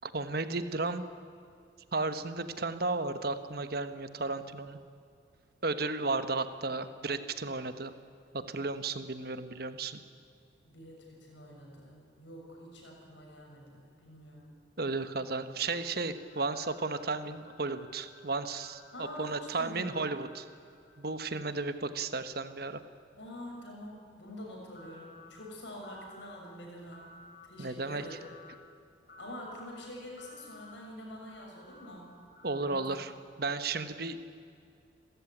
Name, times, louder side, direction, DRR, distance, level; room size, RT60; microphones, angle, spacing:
voice 1, 0.0-1.0 1.9-4.8 5.6-7.9 8.3-10.0 14.8-20.5 21.0-22.8 27.6-28.0 32.4-33.1 33.4-34.2, right 3 dB, 55° right, 10 dB, 1.1 m, -34 dB
voice 2, 10.6-14.5 18.9-20.0 23.2-27.1 27.4-28.2 29.2-32.1 32.6-33.0, left 1 dB, 70° left, 0 dB, 7.0 m, -46 dB
sound 1, 16.1-21.5 24.7-25.3 25.8-26.4 26.9-27.5 28.0-28.6 29.1-29.6 30.2-30.7 31.3-33.1, left 2 dB, 55° left, 2.2 m, -56 dB
29.5 x 14.0 x 9.9 m, 2.4 s
head